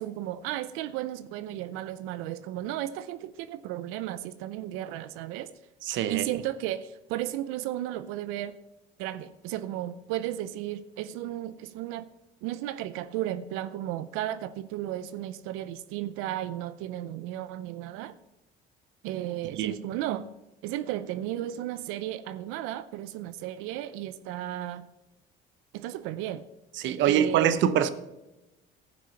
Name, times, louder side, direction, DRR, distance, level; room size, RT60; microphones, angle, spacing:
voice 1, 0.0-5.5 6.1-8.6 9.0-12.1 12.4-18.1 19.0-20.3 20.6-24.9 25.7-26.5 27.0-27.6, right 13 dB, 85° right, 0.6 m, -34 dB
voice 2, 5.9-6.3 19.6-19.8 26.8-27.9, right 9 dB, 65° right, 0.9 m, -24 dB
14.5 x 6.1 x 5.8 m
cardioid pair, 105°, 21 cm